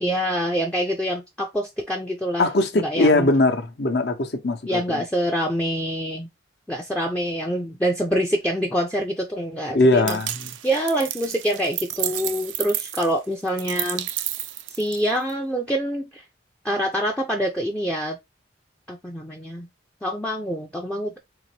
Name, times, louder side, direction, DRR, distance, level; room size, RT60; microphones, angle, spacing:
voice 1, 0.0-2.5 2.7-3.3 4.7-6.3 6.7-10.2 10.6-14.1 14.7-16.2 16.6-18.2 18.9-19.7 20.0-21.2, equal, 5° left, 0.4 m, -25 dB
voice 2, 2.4-5.0 9.7-10.3, left 2 dB, 60° left, 0.7 m, -20 dB
sound 1, 10.1-15.3, right 13 dB, 80° right, 0.4 m, -31 dB
3.9 x 2.9 x 3.1 m
head